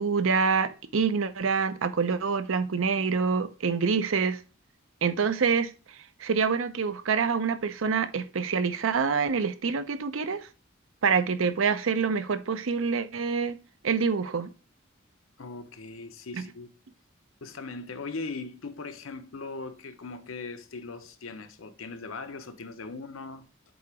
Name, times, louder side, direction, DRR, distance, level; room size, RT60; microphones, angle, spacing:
voice 1, 0.0-4.4 5.0-5.7 6.2-10.4 11.0-13.6 13.8-14.5, right 5 dB, 80° right, 0.6 m, -26 dB
voice 2, 15.4-16.7 17.4-23.5, left 3 dB, 85° left, 0.8 m, -39 dB
7.9 x 2.9 x 4.7 m
head